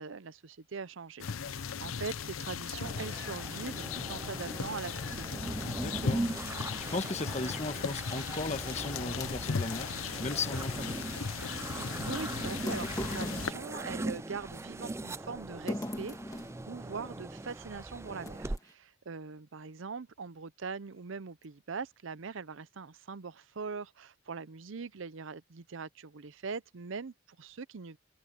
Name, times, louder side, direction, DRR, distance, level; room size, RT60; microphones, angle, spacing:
voice 1, 0.0-5.4 11.7-28.0, right 5 dB, 65° right, 0.6 m, -42 dB
sound 1, 1.2-13.5, left 6 dB, 80° left, 0.7 m, -37 dB
sound 2, 2.8-18.6, right 2 dB, 15° right, 0.4 m, -40 dB
voice 2, 5.8-6.4 6.9-11.0, left 3 dB, 30° left, 1.4 m, -36 dB
sound 3, 8.9-9.9 11.6-11.7 12.5-14.6 15.7-16.6 17.5-17.7 18.2-18.7, left 1 dB, 15° left, 1.7 m, -39 dB
head